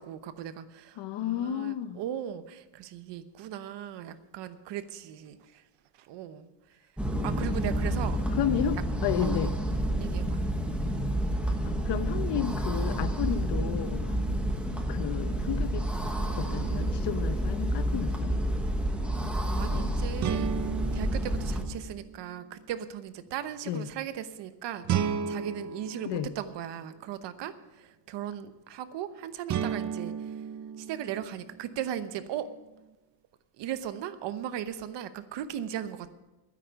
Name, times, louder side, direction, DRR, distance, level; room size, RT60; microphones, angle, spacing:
voice 1, 0.0-5.6 6.0-6.5 7.2-8.2 9.2-9.3 10.0-10.4 19.6-20.5 20.9-30.1 30.8-32.5 33.6-36.1, right 10 dB, 60° right, 11 dB, 1.0 m, -38 dB
voice 2, 1.0-2.0 8.3-9.5 11.6-14.2 14.9-15.8 16.4-18.3 23.7-23.9 26.0-26.3, left 10 dB, 60° left, 13 dB, 0.9 m, -32 dB
sound 1, 7.0-21.6, right 1 dB, ahead, 1.1 m, -29 dB
sound 2, 16.3-17.2 20.2-22.4 24.8-27.0 29.5-31.7, right 8 dB, 40° right, 0.6 m, -34 dB
12.5 x 10.0 x 7.0 m, 1.1 s
cardioid pair, 165°, 47 cm